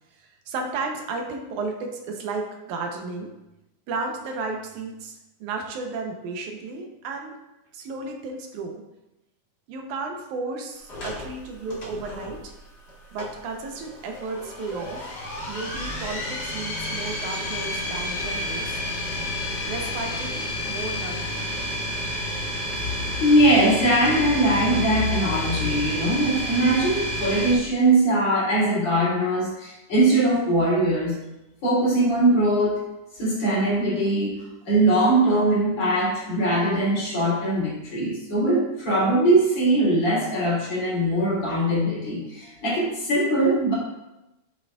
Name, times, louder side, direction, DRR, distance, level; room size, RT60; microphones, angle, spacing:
voice 1, 0.2-3.3 3.9-7.4 7.7-8.8 9.7-12.5 13.1-15.2 15.5-18.8 19.7-21.5, right 3 dB, 75° right, 2 dB, 2.3 m, -33 dB
sound 1, 10.9-27.5, equal, 40° left, 1.8 m, -31 dB
voice 2, 22.7-31.2 31.6-32.8 33.1-43.7, right 1 dB, 55° left, -7 dB, 4.2 m, -21 dB
9.2 x 8.2 x 2.4 m, 0.95 s
omnidirectional pair, 3.5 m